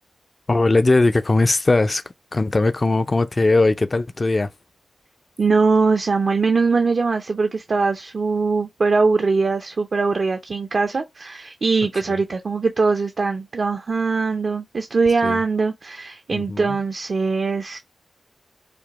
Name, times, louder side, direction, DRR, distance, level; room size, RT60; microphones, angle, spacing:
voice 1, 0.5-2.0 2.3-4.5 15.2-15.4 16.3-16.8, left 2 dB, 35° left, 0.4 m, -19 dB
voice 2, 5.4-17.8, right 4 dB, 55° right, 0.5 m, -21 dB
4.9 x 2.0 x 3.0 m
wide cardioid pair, 85°, 0 cm